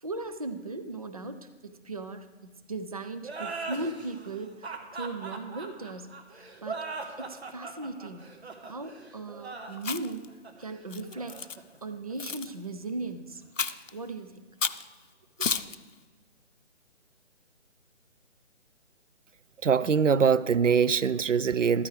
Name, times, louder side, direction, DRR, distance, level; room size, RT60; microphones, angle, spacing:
voice 1, 0.0-6.8 7.2-8.3 8.7-10.3 10.6-11.4 11.8-13.4 13.9-14.4 15.4-15.5, right 2 dB, 30° right, 8 dB, 0.4 m, -38 dB
sound 1, 3.2-12.5, right 4 dB, 60° right, 1.6 m, -40 dB
Chewing mastication, 9.8-10.2 10.9-11.6 12.2-12.5 13.6-13.9 14.6-14.8 15.4-15.8, left 5 dB, 90° left, 0.6 m, -31 dB
voice 2, 19.6-21.9, right 6 dB, 85° right, 16 dB, 0.5 m, -23 dB
14.0 x 13.0 x 3.4 m, 1.4 s
figure-of-eight pair, 145°, 37 cm